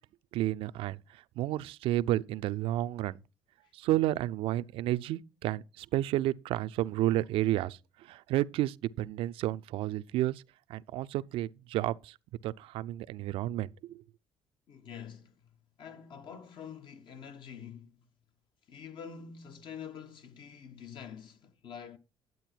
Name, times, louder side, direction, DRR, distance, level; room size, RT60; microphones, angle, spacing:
voice 1, 0.3-1.0 1.4-3.2 3.7-10.4 10.7-12.1 12.4-14.0, right 14 dB, 75° right, 0.5 m, -31 dB
voice 2, 14.7-18.0 18.7-22.0, left 7 dB, 60° left, 1.4 m, -46 dB
11.0 x 8.1 x 4.5 m
supercardioid pair, 80°, 9 cm